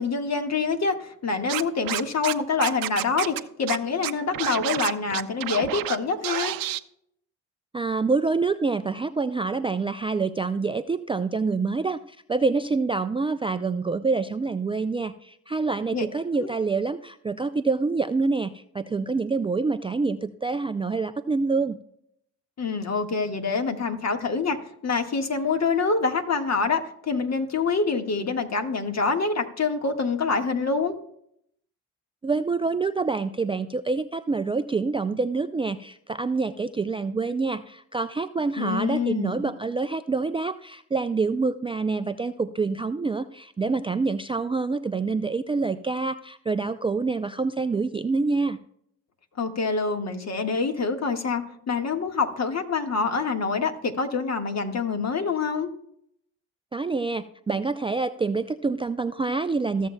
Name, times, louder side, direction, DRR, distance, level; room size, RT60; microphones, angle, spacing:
voice 1, 0.0-6.5 15.9-16.0 16.4-16.5 22.6-24.6 24.8-30.9 38.6-39.5 49.4-55.7, left 4 dB, 40° left, 6 dB, 1.6 m, -26 dB
Scratching (performance technique), 1.5-2.3 2.6-3.4 3.7-3.8 4.0-6.0 6.2-6.8, right 14 dB, 60° right, 0.6 m, -29 dB
voice 2, 7.7-21.8 32.2-48.6 56.7-59.9, right 4 dB, 15° right, 10 dB, 0.4 m, -26 dB
15.0 x 7.4 x 2.2 m, 0.70 s
hypercardioid pair, 50°, 40 cm